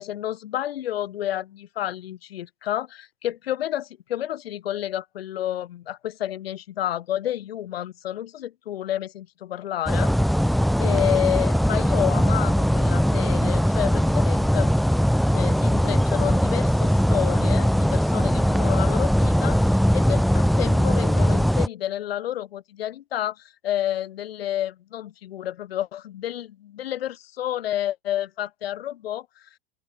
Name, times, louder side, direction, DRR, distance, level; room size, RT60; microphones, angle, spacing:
voice 1, 0.0-10.1 10.4-14.7 15.3-29.5, left 12 dB, 85° left, 3.2 m, -30 dB
sound 1, 9.9-21.7, equal, ahead, 0.6 m, -20 dB
open air
supercardioid pair, 145°, 29 cm